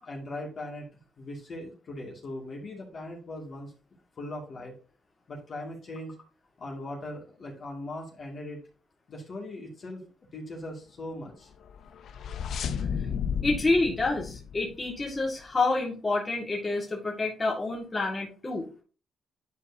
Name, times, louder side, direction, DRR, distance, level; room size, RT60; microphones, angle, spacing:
voice 1, 0.0-0.9 1.2-3.7 4.2-4.7 5.3-6.2 6.6-8.6 9.1-10.0 10.3-11.5, left 1 dB, 50° left, -2 dB, 2.3 m, -39 dB
sound 1, 11.6-15.3, left 7 dB, 70° left, 0.6 m, -33 dB
voice 2, 13.4-18.8, left 3 dB, 25° left, -2 dB, 2.1 m, -28 dB
10.5 x 4.8 x 2.8 m, 0.37 s
supercardioid pair, 70°, 0 cm